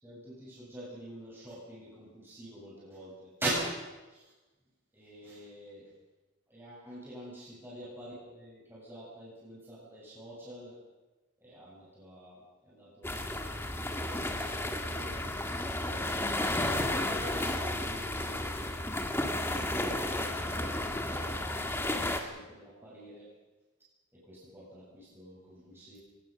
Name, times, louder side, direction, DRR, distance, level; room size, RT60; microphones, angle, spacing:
voice 1, 0.0-3.5 4.1-4.3 4.9-5.9 6.5-10.7 11.4-13.4 13.8-15.2 16.3-18.7 20.5-23.3 24.1-26.0, right 2 dB, 10° right, -7 dB, 7.9 m, -45 dB
sound 1, 13.0-22.2, left 1 dB, 10° left, 1.8 m, -33 dB
24.0 x 19.5 x 6.8 m, 1.1 s
head